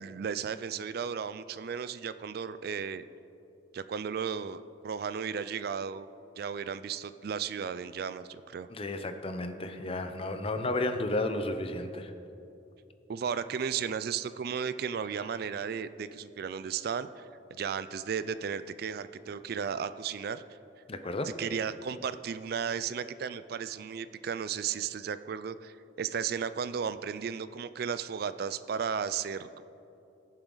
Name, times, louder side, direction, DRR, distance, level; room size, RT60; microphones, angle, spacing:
voice 1, 0.0-3.0 3.7-6.1 6.4-8.7 13.1-20.4 21.4-29.6, right 7 dB, 55° right, 14 dB, 0.4 m, -34 dB
voice 2, 8.7-12.1 20.9-21.3, left 2 dB, 30° left, 8 dB, 0.7 m, -32 dB
20.5 x 7.3 x 3.9 m, 2.8 s
head